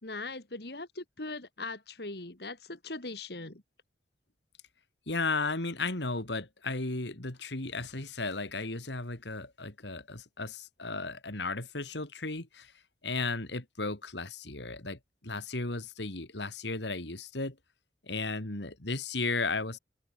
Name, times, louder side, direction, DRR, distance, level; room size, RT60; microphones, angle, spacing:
voice 1, 0.0-3.6, left 3 dB, 60° left, 2.5 m, -40 dB
voice 2, 5.1-12.7 13.0-17.6 18.0-19.8, left 3 dB, 80° left, 2.8 m, -35 dB
open air
head